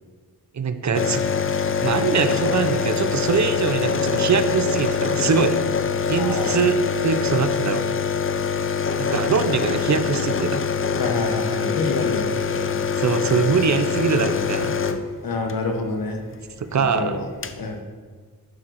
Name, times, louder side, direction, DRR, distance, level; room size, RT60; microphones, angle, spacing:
voice 1, 0.5-1.2 1.8-5.6 6.1-6.8 7.0-7.9 9.0-10.6 13.0-14.8 16.6-17.2, right 6 dB, 45° right, 10 dB, 0.6 m, -23 dB
sound 1, 0.9-15.6 16.9-17.0 17.1-17.6, left 6 dB, 35° left, 0.5 m, -24 dB
voice 2, 6.1-6.6 11.0-12.8 15.2-16.2 16.7-17.3 17.6-17.8, left 3 dB, 60° left, 4 dB, 1.1 m, -27 dB
9.7 x 3.8 x 6.2 m, 1.5 s
wide cardioid pair, 85°, 39 cm